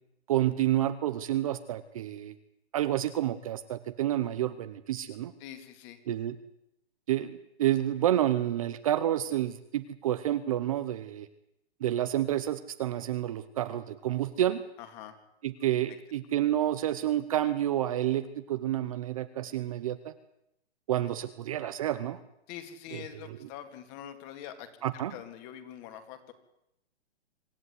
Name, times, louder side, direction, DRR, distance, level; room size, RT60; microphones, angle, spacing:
voice 1, 0.3-2.3 2.7-5.3 6.1-6.4 7.1-11.3 11.8-14.6 15.4-20.1 20.9-22.2 22.9-23.5 24.8-25.2, right 12 dB, 30° right, 12 dB, 0.9 m, -29 dB
voice 2, 5.4-6.0 14.8-15.1 22.5-24.7 25.1-26.3, left 10 dB, 20° left, 9 dB, 2.3 m, -44 dB
26.0 x 14.0 x 9.8 m, 0.82 s
hypercardioid pair, 170°, 34 cm